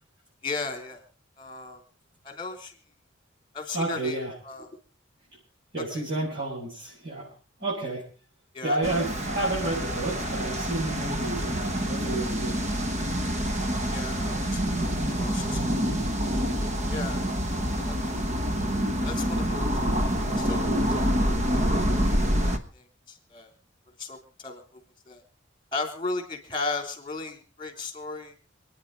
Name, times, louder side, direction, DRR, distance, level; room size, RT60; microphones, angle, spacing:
voice 1, 0.4-1.0 1.4-1.8 2.2-2.7 3.5-4.2 4.4-4.7 5.9-6.0 8.5-8.8 13.9-15.6 16.9-17.2 17.5-18.0 19.0-20.1 20.4-20.6 20.9-21.3 22.7-23.5 24.0-24.6 25.1-25.2 25.7-28.4, left 3 dB, 25° left, 5 dB, 3.0 m, -36 dB
voice 2, 3.7-4.3 5.7-7.3 7.6-8.0 8.6-12.6, right 2 dB, 55° right, -7 dB, 7.1 m, -30 dB
sound 1, 8.8-22.6, equal, 35° right, 1.3 m, -27 dB
27.0 x 9.8 x 4.0 m, 0.35 s
head